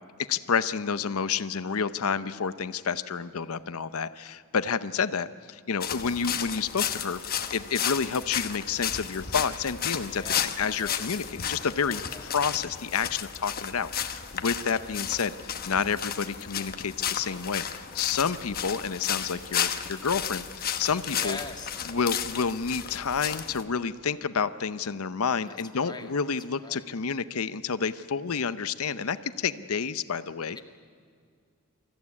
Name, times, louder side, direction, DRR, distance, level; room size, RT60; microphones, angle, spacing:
voice 1, 0.3-7.2 7.5-21.4 21.9-30.6, left 6 dB, 70° left, 14 dB, 0.7 m, -29 dB
sound 1, 5.8-23.6, left 9 dB, 45° left, 1.1 m, -33 dB
voice 2, 10.1-10.5 10.8-11.0 11.9-12.3 21.1-22.1 25.5-26.1 26.6-26.9 30.5-30.6, left 3 dB, 20° left, 3 dB, 1.8 m, -42 dB
24.5 x 14.5 x 9.6 m, 2.2 s
head